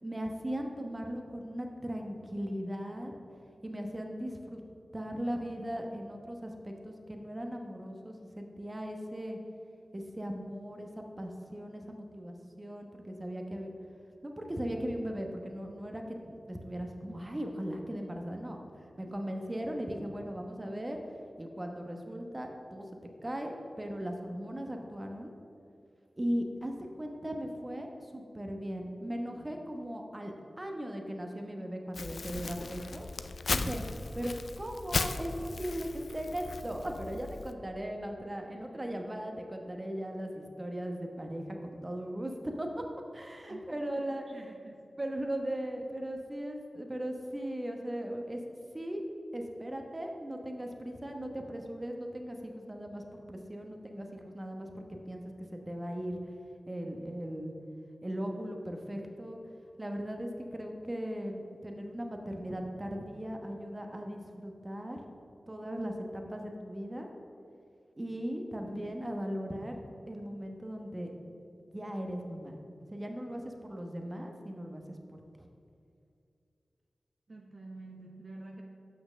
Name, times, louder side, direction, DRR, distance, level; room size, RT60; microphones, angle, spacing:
voice 1, 0.0-3.1 3.6-4.6 4.9-9.4 9.9-13.7 14.2-21.0 21.4-25.3 26.2-33.1 33.5-33.8 34.1-42.8 43.1-44.3 45.0-48.4 48.7-49.0 49.3-56.2 56.7-57.5 58.0-59.4 59.8-65.0 65.5-67.1 68.0-69.8 70.1-71.1 71.7-72.6 72.9-74.8 75.4-75.5, equal, 30° right, 3 dB, 1.1 m, -38 dB
Crumpling crinkling, 31.9-37.5, left 4 dB, 80° left, 0.3 m, -37 dB
voice 2, 38.5-39.0 43.5-44.9 77.3-78.6, right 2 dB, 55° right, 1 dB, 0.8 m, -49 dB
6.5 x 5.8 x 6.3 m, 2.4 s
cardioid pair, 40°, 0 cm